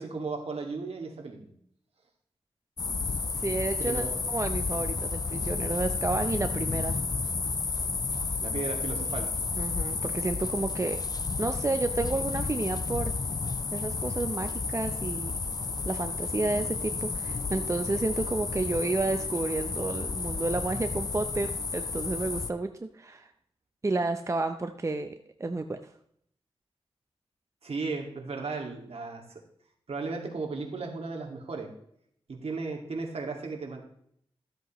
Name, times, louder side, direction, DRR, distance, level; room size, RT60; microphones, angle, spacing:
voice 1, 0.0-1.5 3.8-4.2 8.4-9.3 27.6-29.4 29.9-31.7 32.3-33.9, right 4 dB, 65° right, 1 dB, 2.1 m, -35 dB
sound 1, 2.8-22.5, left 4 dB, 35° left, 0.4 m, -32 dB
voice 2, 3.4-7.0 9.6-11.0 11.4-13.1 13.7-15.3 15.8-23.3 23.8-25.1 25.4-25.8, right 2 dB, 25° right, 7 dB, 0.6 m, -31 dB
13.5 x 7.9 x 3.1 m, 0.69 s
wide cardioid pair, 75°, 11 cm